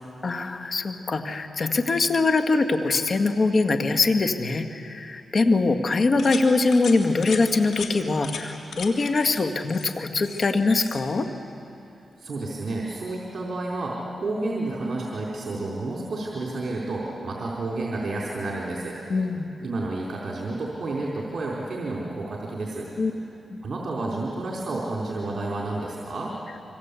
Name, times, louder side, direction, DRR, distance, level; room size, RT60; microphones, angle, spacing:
voice 1, 0.2-11.3 19.1-19.5 23.0-23.1 23.5-23.6, left 3 dB, 50° left, 6 dB, 1.9 m, -23 dB
sound 1, 6.2-6.4 6.7-6.9 7.2-7.4 7.7-7.9 8.2-8.4 8.7-8.9 9.2-9.4 9.7-10.5 10.7-11.0, left 6 dB, 80° left, 2.9 m, -36 dB
voice 2, 12.2-19.0 19.6-22.9 23.6-26.3, right 2 dB, 55° right, -3 dB, 4.1 m, -30 dB
26.0 x 24.5 x 8.4 m, 2.8 s
cardioid pair, 60°, 0 cm